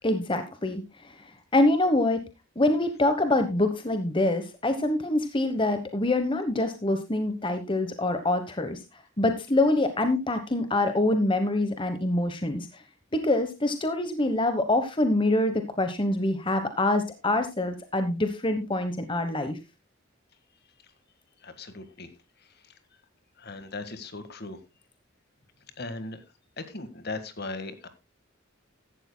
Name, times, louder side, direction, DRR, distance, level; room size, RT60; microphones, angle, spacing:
voice 1, 0.0-1.1 1.5-2.2 2.6-8.8 9.2-12.8 13.1-19.6, left 2 dB, 25° left, 8 dB, 1.1 m, -25 dB
voice 2, 21.4-22.1 22.6-22.7 23.4-24.6 25.8-26.2 26.6-27.9, left 3 dB, 50° left, 10 dB, 1.7 m, -38 dB
15.5 x 12.0 x 2.2 m, 0.25 s
head